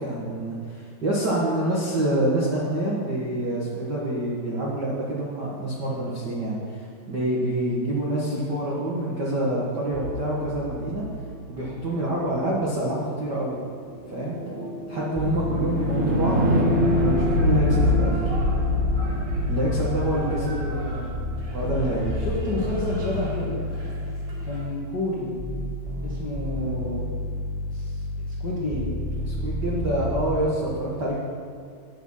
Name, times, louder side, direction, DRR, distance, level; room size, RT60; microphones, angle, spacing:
voice 1, 0.0-11.0 11.5-13.6 14.1-14.4 14.9-18.3 19.5-20.6 21.5-22.3 29.3-31.2, right 1 dB, 85° right, -6 dB, 0.9 m, -27 dB
sound 1, 9.9-12.1 13.9-22.0, left 1 dB, 55° right, 2.2 m, -25 dB
sound 2, 15.1-17.3 17.8-24.9 25.4-30.4, left 1 dB, ahead, 1.9 m, -30 dB
sound 3, 16.7-24.6, right 2 dB, 30° right, 2.0 m, -42 dB
voice 2, 20.3-21.2 22.2-23.6 24.4-25.3 26.0-27.1 27.7-28.9, left 2 dB, 75° left, -6 dB, 0.9 m, -30 dB
9.2 x 8.7 x 5.5 m, 2.3 s
omnidirectional pair, 4.3 m